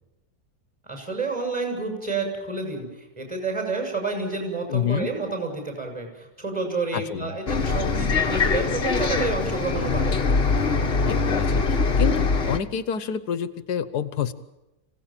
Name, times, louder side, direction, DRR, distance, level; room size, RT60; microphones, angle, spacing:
voice 1, 0.8-10.2, right 3 dB, 20° right, 3 dB, 7.3 m, -29 dB
voice 2, 4.7-5.1 6.9-7.4 11.1-14.3, left 8 dB, 80° left, 13 dB, 1.6 m, -28 dB
Bus, 7.5-12.6, left 4 dB, 40° left, 1.5 m, -23 dB
25.5 x 17.5 x 9.0 m, 0.98 s
omnidirectional pair, 1.7 m